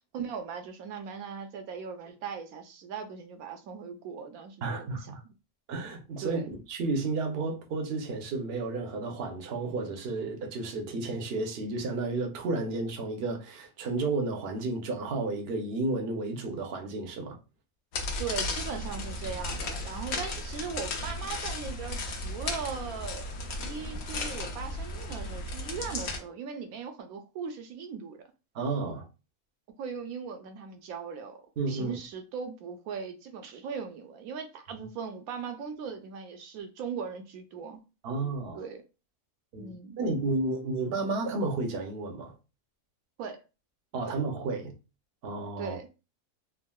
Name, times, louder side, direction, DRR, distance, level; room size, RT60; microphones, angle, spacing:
voice 1, 0.1-5.0 6.2-6.5 18.2-23.3 23.6-28.2 29.8-37.8 38.5-38.8 39.6-40.0 43.2-43.4 44.0-44.2 45.6-45.9, right 6 dB, 80° right, 1.0 m, -39 dB
voice 2, 4.6-5.2 5.7-17.4 28.5-29.1 31.6-32.0 34.8-34.9 38.0-38.6 39.5-42.3 43.9-44.7 45.2-45.8, right 3 dB, 55° right, 0.7 m, -32 dB
sound 1, 17.9-26.2, left 2 dB, 70° left, 1.0 m, -35 dB
3.5 x 2.0 x 2.2 m
omnidirectional pair, 1.5 m